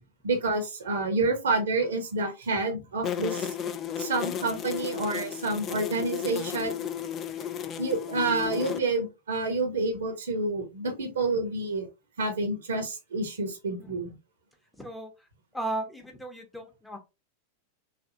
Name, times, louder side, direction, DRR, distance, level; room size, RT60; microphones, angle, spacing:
voice 1, 0.2-3.5 4.0-6.8 7.8-11.9 12.2-14.1, right 3 dB, 65° right, 6 dB, 0.9 m, -28 dB
sound 1, 3.0-8.8, left 8 dB, 30° left, 0.4 m, -34 dB
voice 2, 14.8-15.1 15.5-17.0, right 2 dB, 5° left, 3 dB, 0.8 m, -35 dB
3.3 x 2.4 x 2.7 m, 0.25 s
figure-of-eight pair, 90°, 0 cm